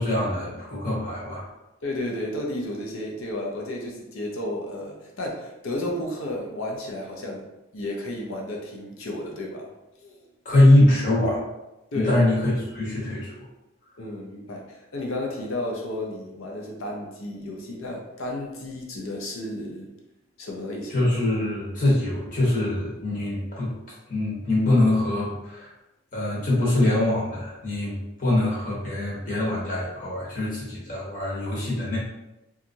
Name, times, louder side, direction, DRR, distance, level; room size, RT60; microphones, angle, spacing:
voice 1, 0.0-1.5 10.4-11.4 11.9-13.5 20.9-23.7 24.1-25.7 26.1-32.0, left 1 dB, 40° left, -6 dB, 0.9 m, -23 dB
voice 2, 1.8-7.5 7.7-9.7 10.0-10.2 11.9-12.2 14.0-19.9 20.4-21.0, left 1 dB, 75° left, 0 dB, 0.5 m, -32 dB
2.8 x 2.4 x 2.6 m, 0.95 s
head